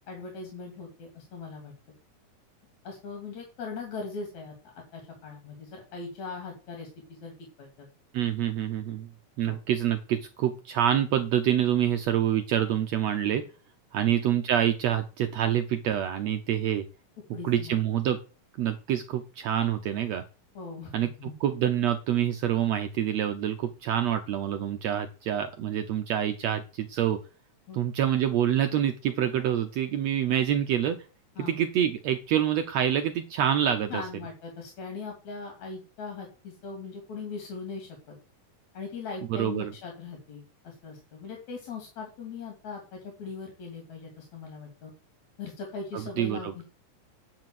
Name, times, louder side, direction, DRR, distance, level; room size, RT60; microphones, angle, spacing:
voice 1, 0.1-1.7 2.8-7.3 7.6-7.9 9.5-9.6 14.0-14.1 17.3-17.8 20.6-20.9 21.2-21.3 27.7-27.8 31.4-31.5 33.9-38.2 38.7-44.9 45.4-46.6, left 4 dB, 60° left, 2 dB, 3.7 m, -40 dB
voice 2, 8.1-9.1 9.4-13.4 13.9-16.9 17.4-18.2 18.6-20.2 20.9-27.2 27.7-31.0 31.4-34.0 39.3-39.7 45.9-46.5, right 10 dB, 75° right, 7 dB, 1.6 m, -26 dB
10.0 x 5.2 x 7.6 m, 0.34 s
omnidirectional pair, 3.9 m